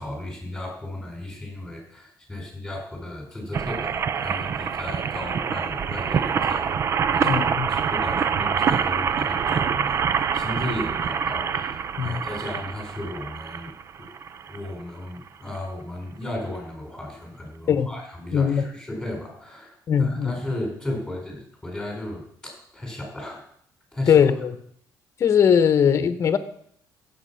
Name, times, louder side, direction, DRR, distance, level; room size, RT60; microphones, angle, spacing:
voice 1, 0.0-7.4 7.7-13.7 14.0-14.1 14.5-23.4 23.9-24.2, left 1 dB, ahead, 0 dB, 4.9 m, -35 dB
sound 1, 3.5-14.7 15.3-15.4 15.5-15.6, right 7 dB, 40° right, 0.5 m, -25 dB
voice 2, 7.2-7.7 12.0-12.2 17.7-17.9 18.3-18.7 19.9-20.3 24.1-24.6 25.2-26.4, left 7 dB, 40° left, 11 dB, 1.0 m, -20 dB
16.0 x 7.1 x 5.8 m, 0.65 s
cardioid pair, 150°, 7 cm